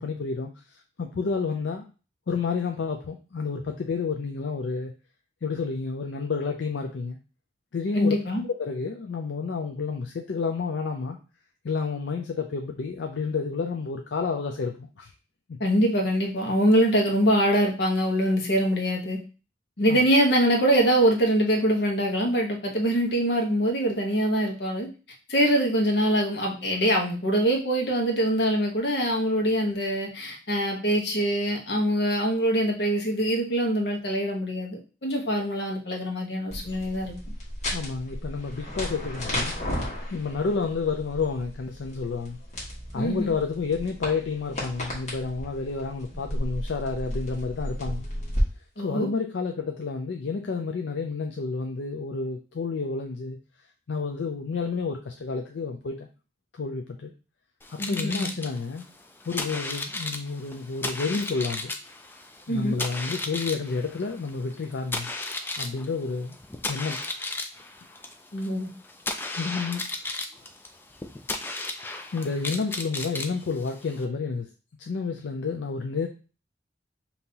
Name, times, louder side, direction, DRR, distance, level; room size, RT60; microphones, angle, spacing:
voice 1, 0.0-1.9 2.3-4.9 5.4-7.2 7.7-8.2 8.5-11.2 11.6-15.1 19.9-20.0 37.7-39.5 40.1-42.4 42.9-48.1 48.8-53.4 53.9-56.1 56.5-57.1 57.7-58.8 59.3-61.7 62.5-65.1 65.6-66.4 66.7-67.0 69.2-70.1 72.1-74.5 74.8-76.1, left 4 dB, 85° left, 3 dB, 0.5 m, -30 dB
voice 2, 7.9-8.4 15.6-19.2 19.8-24.9 25.3-37.1 42.9-43.3 48.8-49.1 57.8-58.3 62.5-62.8 68.3-68.7, equal, 70° left, 0 dB, 1.2 m, -24 dB
sound 1, 36.5-48.4, equal, 40° left, 1.4 m, -34 dB
sound 2, 57.6-74.0, left 2 dB, 10° left, 0.3 m, -35 dB
5.3 x 2.9 x 2.8 m, 0.34 s
head